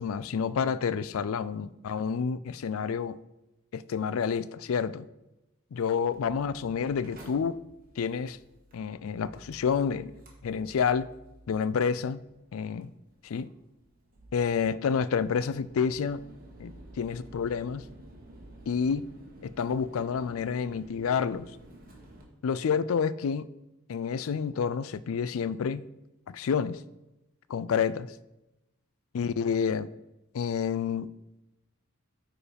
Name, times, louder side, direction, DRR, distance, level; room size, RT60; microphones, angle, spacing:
voice 1, 0.0-3.2 3.7-5.0 5.7-7.6 8.0-8.4 8.7-10.1 10.4-11.1 11.5-12.2 12.5-12.9 13.2-13.5 14.3-16.2 16.6-16.7 17.0-17.8 18.7-19.0 19.4-21.5 22.4-23.5 23.9-25.8 26.3-26.8 27.5-28.1 29.1-29.9 30.3-31.1, left 6 dB, 70° left, 17 dB, 0.4 m, -29 dB
Mechanical fan, 6.1-22.2, right 1 dB, 40° right, 1.6 m, -52 dB
8.7 x 4.7 x 5.1 m, 0.95 s
head